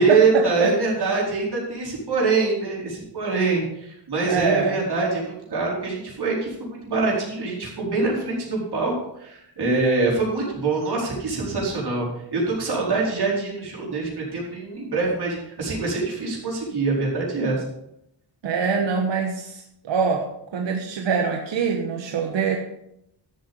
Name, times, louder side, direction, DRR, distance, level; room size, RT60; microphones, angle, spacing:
voice 1, 0.0-12.1 12.3-17.6, right 3 dB, 60° right, -4 dB, 4.7 m, -24 dB
voice 2, 4.2-4.8 18.4-20.2 20.5-22.6, right 6 dB, 80° right, 3 dB, 1.3 m, -24 dB
12.5 x 7.9 x 5.1 m, 0.77 s
wide cardioid pair, 125°, 43 cm